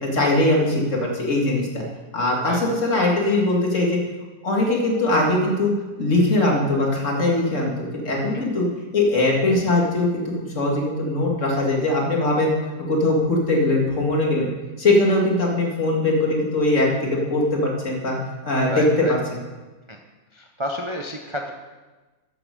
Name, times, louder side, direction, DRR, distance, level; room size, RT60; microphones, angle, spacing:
voice 1, 0.0-1.8 2.1-4.0 4.4-5.7 6.0-8.7 8.9-10.2 10.5-12.5 12.9-14.5 14.8-18.2 18.5-19.4, left 2 dB, 45° left, -1 dB, 2.4 m, -21 dB
voice 2, 18.7-19.1 19.9-20.0 20.3-21.5, equal, 30° right, 2 dB, 0.5 m, -30 dB
13.5 x 8.0 x 5.2 m, 1.2 s
omnidirectional pair, 1.8 m